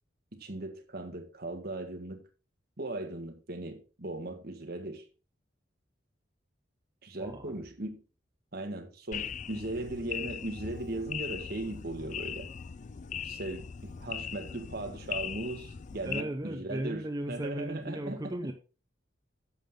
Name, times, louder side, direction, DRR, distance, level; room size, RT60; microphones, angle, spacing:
voice 1, 0.3-2.2 2.8-5.1 7.0-8.0 8.5-12.5 13.2-18.5, right 2 dB, 55° right, 1.7 m, -38 dB
sound 1, 9.1-16.2, left 7 dB, 40° left, 0.4 m, -39 dB
voice 2, 16.0-18.5, right 1 dB, 20° right, 0.9 m, -36 dB
10.5 x 7.4 x 3.7 m
head